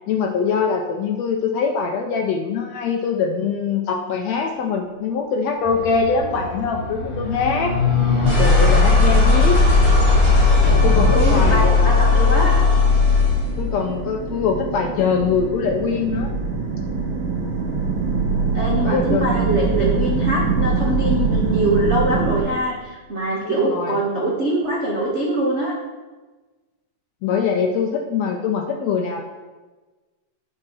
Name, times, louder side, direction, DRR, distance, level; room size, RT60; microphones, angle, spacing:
voice 1, 0.1-7.7 8.4-9.6 10.8-12.2 13.6-16.3 18.8-19.4 23.4-24.0 27.2-29.2, left 5 dB, 75° left, 3 dB, 1.6 m, -23 dB
sound 1, 5.6-13.5, left 3 dB, 10° left, 3.1 m, -17 dB
sound 2, 7.0-22.4, right 4 dB, 40° right, 2.0 m, -25 dB
voice 2, 11.1-12.5 18.5-25.7, right 1 dB, 80° right, -5 dB, 0.6 m, -23 dB
9.8 x 5.7 x 6.0 m, 1.3 s
omnidirectional pair, 3.7 m